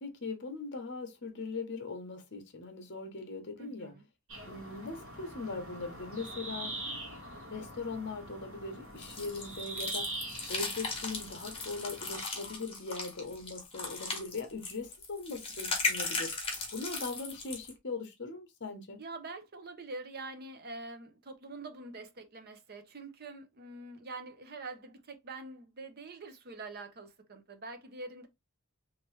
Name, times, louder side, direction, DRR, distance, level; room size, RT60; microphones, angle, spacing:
voice 1, 0.0-3.9 4.5-6.8 7.5-10.1 10.5-16.3 16.7-19.0, left 3 dB, 50° left, 0.9 m, -40 dB
voice 2, 3.6-4.1 19.0-28.3, right 3 dB, 45° right, 0.7 m, -45 dB
sound 1, 4.3-12.2, right 2 dB, 65° right, 1.7 m, -43 dB
sound 2, 9.0-17.7, left 3 dB, 25° left, 1.1 m, -37 dB
3.3 x 2.9 x 3.1 m
head